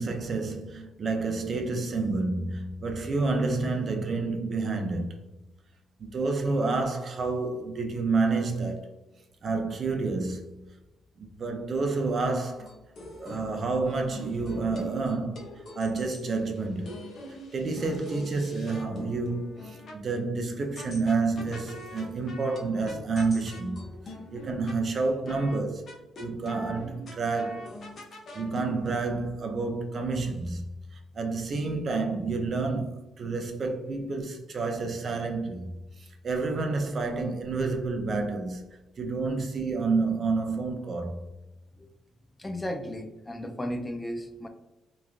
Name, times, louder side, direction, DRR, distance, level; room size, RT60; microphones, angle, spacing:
voice 1, 0.0-5.1 6.0-8.9 9.4-10.7 11.2-12.7 13.2-16.9 17.5-25.9 26.2-27.7 28.3-30.6 31.1-38.6 39.0-41.2, right 3 dB, 50° right, 0.5 m, -29 dB
sound 1, 12.6-20.0 20.8-24.8 25.3-25.6 25.9-29.1, left 1 dB, 55° left, 0.7 m, -44 dB
voice 2, 42.4-44.5, equal, 20° left, 0.3 m, -34 dB
3.0 x 2.3 x 2.4 m
cardioid pair, 90°, 0 cm